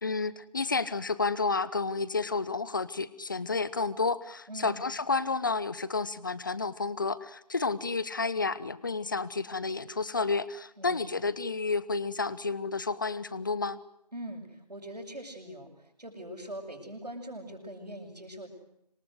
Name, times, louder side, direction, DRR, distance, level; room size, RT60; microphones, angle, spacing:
voice 1, 0.0-13.8, left 4 dB, 30° left, 17 dB, 1.2 m, -31 dB
voice 2, 4.5-4.8 10.8-11.3 14.1-18.5, right 1 dB, 75° right, -5 dB, 7.3 m, -42 dB
26.5 x 23.5 x 8.0 m, 0.81 s
figure-of-eight pair, 165°, 21 cm